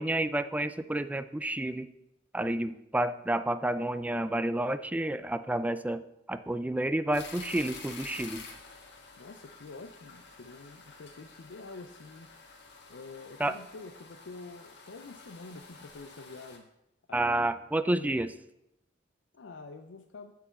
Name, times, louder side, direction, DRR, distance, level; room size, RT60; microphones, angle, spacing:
voice 1, 0.0-1.9 2.3-6.0 6.3-8.5 13.4-13.5 17.1-18.3, right 1 dB, 10° right, 12 dB, 0.3 m, -30 dB
sound 1, 7.1-16.6, left 4 dB, 65° left, 1.6 m, -49 dB
voice 2, 9.2-12.3 12.9-16.7 17.1-17.6 17.9-18.3 19.3-20.3, left 3 dB, 90° left, 6 dB, 0.5 m, -47 dB
8.8 x 4.7 x 7.1 m, 0.85 s
head